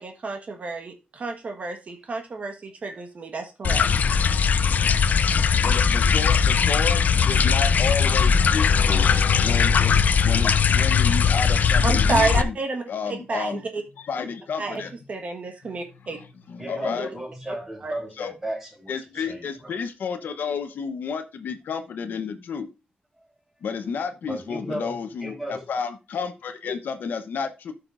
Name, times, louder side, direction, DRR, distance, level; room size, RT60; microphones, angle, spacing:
voice 1, 0.0-3.9 11.8-12.8 13.3-13.8 14.6-14.8 15.1-16.2 17.0-17.1 17.8-17.9, right 3 dB, 50° right, 4 dB, 1.4 m, -29 dB
sound 1, 3.6-12.4, left 6 dB, 60° left, 0.5 m, -19 dB
voice 2, 5.6-9.1 9.4-9.9 10.2-12.5 12.9-13.6 14.0-14.9 15.9-17.1 18.2-18.3 18.9-22.7 23.6-27.7, left 6 dB, 80° left, 8 dB, 1.0 m, -31 dB
voice 3, 16.6-19.7 24.3-25.6, right 1 dB, 10° right, 0 dB, 3.9 m, -35 dB
14.0 x 5.9 x 2.5 m, 0.28 s
wide cardioid pair, 130°, 3 cm